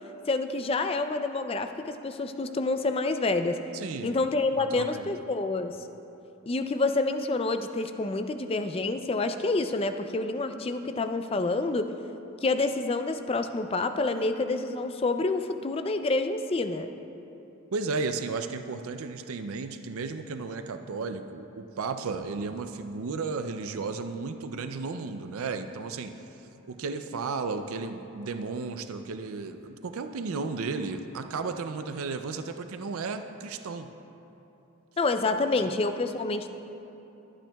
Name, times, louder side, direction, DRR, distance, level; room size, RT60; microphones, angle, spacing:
voice 1, 0.3-3.6 4.0-5.8 6.5-11.9 12.4-16.9 35.0-36.5, left 3 dB, 25° left, 8 dB, 0.4 m, -28 dB
voice 2, 3.7-4.2 4.6-5.1 17.7-26.1 26.7-33.9 35.6-35.9, right 4 dB, 75° right, 8 dB, 0.4 m, -34 dB
22.0 x 8.9 x 2.3 m, 2.9 s
head